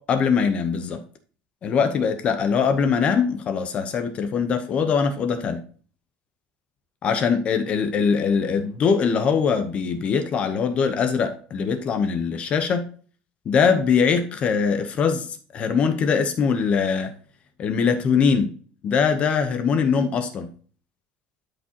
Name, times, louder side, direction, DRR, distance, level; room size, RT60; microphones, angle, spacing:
voice 1, 0.1-1.0 1.6-5.6 7.0-12.9 13.5-15.3 15.5-17.1 17.6-18.5 18.8-20.5, left 6 dB, 30° left, 0.9 m, -22 dB
12.0 x 5.1 x 2.9 m
cardioid pair, 165°, 4 cm